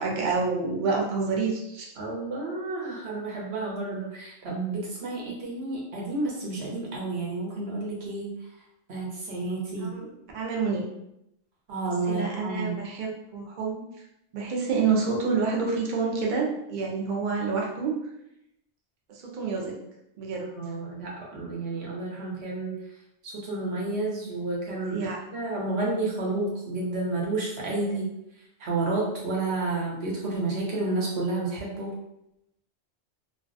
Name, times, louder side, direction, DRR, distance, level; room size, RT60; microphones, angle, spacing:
voice 1, 0.0-1.9 9.8-10.8 12.1-13.8 14.3-17.9 19.1-19.8 20.2-20.5 24.9-25.2, right 4 dB, 55° right, -1 dB, 0.6 m, -28 dB
voice 2, 2.0-8.4 8.9-9.9 11.7-12.8 20.6-22.8 23.2-28.0 28.6-31.9, right 2 dB, 70° right, -3 dB, 1.0 m, -30 dB
2.3 x 2.2 x 2.5 m, 0.83 s
omnidirectional pair, 1.1 m